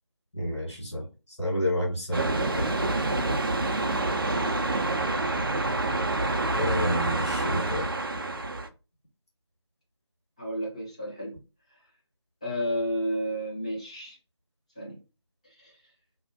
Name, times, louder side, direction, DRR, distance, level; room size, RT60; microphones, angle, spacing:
voice 1, 0.3-1.0 1.4-2.7 6.5-7.9, left 1 dB, 75° left, 1.4 m, -29 dB
sound 1, 2.1-8.7, right 2 dB, 50° right, 0.4 m, -27 dB
voice 2, 10.4-11.4 12.4-14.2 14.8-15.0 15.6-15.7, equal, 15° left, 0.5 m, -31 dB
2.4 x 2.1 x 2.7 m
figure-of-eight pair, 165°, 15 cm